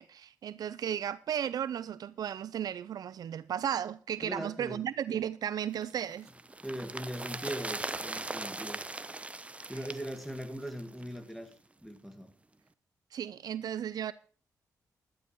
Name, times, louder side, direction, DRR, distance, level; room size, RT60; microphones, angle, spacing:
voice 1, 0.0-6.3 13.1-14.1, right 9 dB, 70° right, 0.5 m, -34 dB
voice 2, 4.2-4.8 6.6-8.8 9.7-11.5 11.8-12.3, equal, ahead, 2.2 m, -40 dB
sound 1, 5.8-11.2 11.5-11.6, right 2 dB, 20° right, 0.8 m, -40 dB
sound 2, 7.2-10.4 11.8-11.9, right 4 dB, 45° right, 3.6 m, -59 dB
12.0 x 11.5 x 4.6 m
cardioid pair, 75°, 7 cm